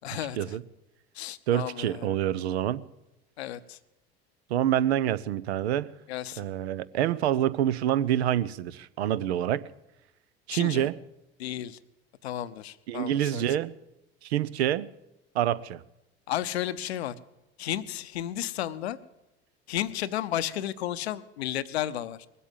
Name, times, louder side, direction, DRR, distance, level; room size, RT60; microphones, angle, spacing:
voice 1, 0.0-0.6 1.2-2.1 3.4-3.8 6.1-6.4 10.5-10.9 11.4-11.8 12.2-13.6 16.3-17.1 17.6-19.0 19.7-22.3, left 12 dB, 85° left, 0.7 m, -33 dB
voice 2, 1.5-2.8 4.5-5.9 6.4-9.6 10.5-10.9 12.9-13.7 14.2-14.9 15.3-15.8, right 11 dB, 80° right, 0.6 m, -27 dB
20.5 x 8.3 x 7.3 m
hypercardioid pair, 70°, 32 cm